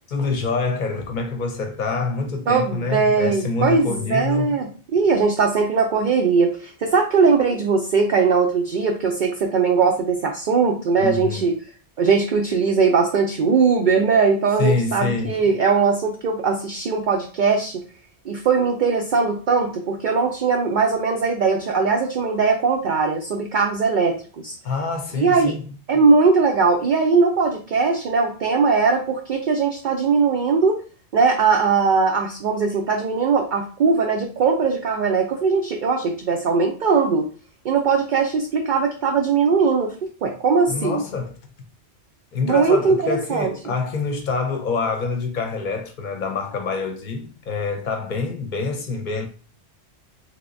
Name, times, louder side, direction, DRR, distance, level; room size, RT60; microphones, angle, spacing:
voice 1, 0.1-4.6 11.0-11.5 14.6-15.3 24.6-25.6 40.7-41.4 42.3-49.3, left 4 dB, 50° left, 0.8 m, -26 dB
voice 2, 2.5-11.5 12.0-17.8 18.2-24.5 25.1-25.6 25.9-30.8 31.1-37.3 37.6-39.9 40.2-41.0 42.4-43.5, right 5 dB, 55° right, 0.6 m, -20 dB
3.4 x 2.9 x 2.5 m
omnidirectional pair, 1.1 m